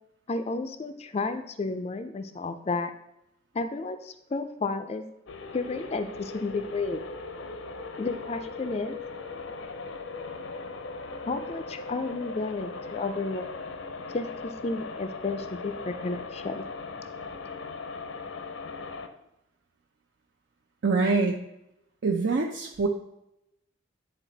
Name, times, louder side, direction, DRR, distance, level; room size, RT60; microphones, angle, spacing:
voice 1, 0.3-2.9 3.5-5.0 5.5-7.0 8.0-9.0 11.3-13.5 14.1-14.3 14.6-16.6, left 3 dB, 30° left, 9 dB, 0.4 m, -32 dB
sound 1, 5.3-19.1, left 4 dB, 85° left, 0.7 m, -39 dB
voice 2, 20.8-21.4 22.0-22.9, right 4 dB, 65° right, 1 dB, 0.5 m, -24 dB
9.1 x 4.1 x 3.9 m, 0.86 s
head